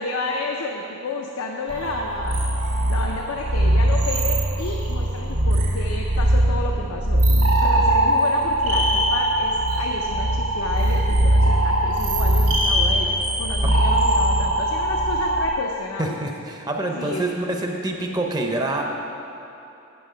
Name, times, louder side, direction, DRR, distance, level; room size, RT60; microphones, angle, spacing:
voice 1, 0.0-2.4 2.9-7.3 7.6-16.2 16.9-17.3, left 3 dB, 75° left, 1 dB, 0.6 m, -31 dB
sound 1, 1.7-15.5, right 1 dB, 90° right, 1.8 m, -20 dB
voice 2, 16.0-18.8, right 2 dB, 20° right, 2 dB, 0.6 m, -26 dB
7.8 x 7.5 x 5.0 m, 2.9 s
head